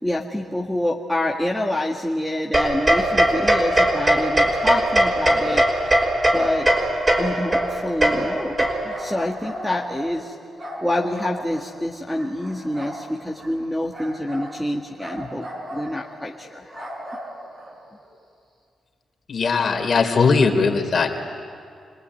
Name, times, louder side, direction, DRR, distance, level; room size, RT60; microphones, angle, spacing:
voice 1, 0.0-6.0 6.3-6.7 7.2-10.4 10.8-16.9, left 1 dB, ahead, -4 dB, 1.9 m, -27 dB
sound 1, 2.5-9.1, right 1 dB, 30° right, 5.9 m, -20 dB
sound 2, 5.4-7.6 8.3-8.5 8.9-10.3 10.6-11.7 12.1-13.0 13.4-13.6 13.9-14.6 15.0-16.1 16.4-18.1, equal, 45° right, 7.1 m, -37 dB
voice 2, 19.3-21.1, left 4 dB, 50° left, 4 dB, 3.4 m, -19 dB
27.0 x 20.0 x 9.6 m, 2.3 s
cardioid pair, 75°, 0 cm